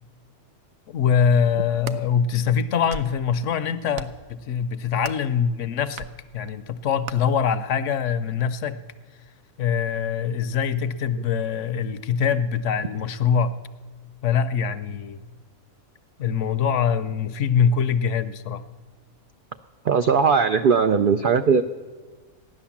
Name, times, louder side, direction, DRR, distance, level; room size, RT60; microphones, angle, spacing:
voice 1, 0.9-6.1 6.3-8.8 9.6-13.6 14.2-15.2 16.2-18.6, left 7 dB, 65° left, 12 dB, 0.9 m, -23 dB
sound 1, 1.6-2.0 2.7-3.2 3.9-4.3 5.0-5.3 6.0-6.2 7.1-7.2, right 5 dB, 60° right, 0.9 m, -36 dB
voice 2, 19.9-21.6, right 6 dB, 80° right, 9 dB, 0.4 m, -19 dB
15.0 x 11.0 x 7.2 m, 1.4 s
omnidirectional pair, 1.5 m